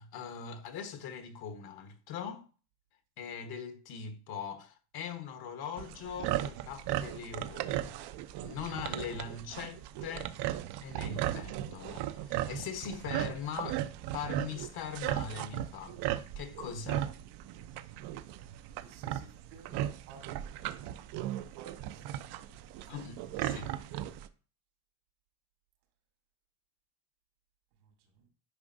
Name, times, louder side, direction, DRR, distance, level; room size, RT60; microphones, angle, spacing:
voice 1, 0.0-2.5 3.2-8.0 8.4-10.3 10.8-13.8 14.1-16.0 16.4-17.1 22.9-23.1 23.4-23.8, left 7 dB, 55° left, 1.2 m, -41 dB
sound 1, 5.8-24.3, right 12 dB, 60° right, 0.7 m, -37 dB
voice 2, 18.4-20.4 21.5-23.0 27.8-28.3, right 5 dB, 85° right, 2.9 m, -57 dB
9.8 x 5.1 x 2.6 m
supercardioid pair, 105°, 45 cm